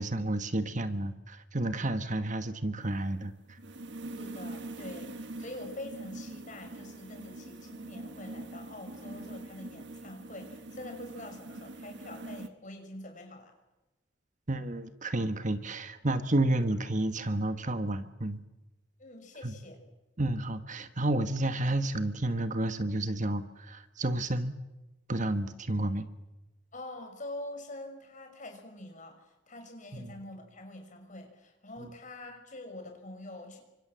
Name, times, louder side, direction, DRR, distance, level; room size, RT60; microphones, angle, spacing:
voice 1, 0.0-3.6 14.5-18.4 19.4-19.5 20.2-24.5 25.1-26.0 29.9-30.2 31.8-31.9, right 1 dB, 40° right, 10 dB, 1.4 m, -31 dB
sound 1, 2.8-12.5, right 2 dB, 65° right, 1.6 m, -43 dB
voice 2, 4.2-13.5 19.0-19.8 26.7-33.6, left 1 dB, 45° left, 5 dB, 5.9 m, -45 dB
29.0 x 25.0 x 7.6 m, 1.0 s
head